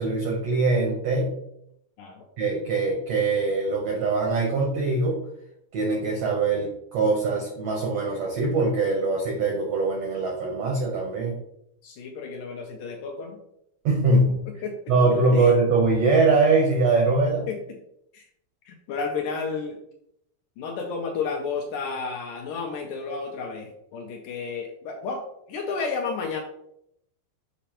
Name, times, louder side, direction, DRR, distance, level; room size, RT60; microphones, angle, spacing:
voice 1, 0.0-1.3 2.4-5.2 5.7-11.4 13.8-14.4 14.9-17.5, right 3 dB, 80° right, -1 dB, 1.4 m, -22 dB
voice 2, 11.8-13.4 14.1-14.2 14.6-14.8 15.3-15.5 17.5-17.6 18.1-18.3 18.7-19.8 20.6-25.2 25.5-26.4, left 5 dB, 80° left, 2 dB, 2.0 m, -32 dB
6.9 x 4.9 x 3.0 m, 0.76 s
omnidirectional pair, 4.3 m